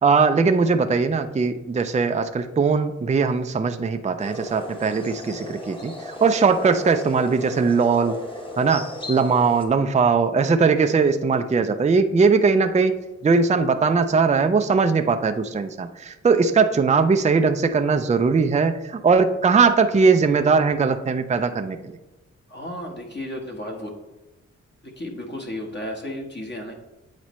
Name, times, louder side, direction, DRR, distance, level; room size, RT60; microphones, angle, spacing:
voice 1, 0.0-8.2 8.6-13.0 13.2-22.0, right 5 dB, 25° right, 7 dB, 0.4 m, -20 dB
sound 1, 4.2-9.6, left 1 dB, 15° left, 1.0 m, -35 dB
voice 2, 22.5-23.9 24.8-26.7, left 1 dB, 35° left, 0 dB, 1.2 m, -33 dB
8.8 x 4.1 x 3.1 m, 1.1 s
cardioid pair, 65°, 30 cm